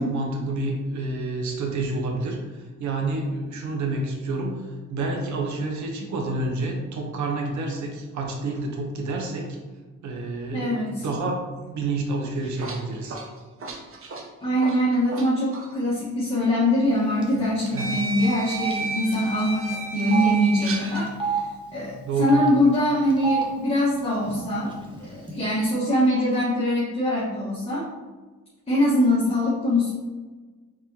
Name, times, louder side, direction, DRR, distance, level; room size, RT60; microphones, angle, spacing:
voice 1, 0.0-4.6 4.9-9.6 10.0-10.7 11.0-13.2 17.7-17.9 22.0-22.4, right 2 dB, 70° right, 1 dB, 1.0 m, -29 dB
voice 2, 10.5-11.1 14.4-21.4 21.7-24.7 25.1-27.9 28.7-29.9, left 1 dB, 20° left, -8 dB, 1.4 m, -23 dB
sound 1, 12.2-15.3 15.5-15.7 16.8-16.9 17.8-21.1, right 3 dB, 45° right, 0.9 m, -33 dB
Telephone, 17.2-17.4 17.7-17.8 18.7-18.8 19.1-19.2 20.0-20.3 21.1-21.4 22.2-22.5 23.1-23.4 24.2-24.4 24.6-25.3, right 6 dB, 15° right, 1.1 m, -27 dB
4.5 x 4.2 x 2.8 m, 1.3 s
cardioid pair, 90°, 30 cm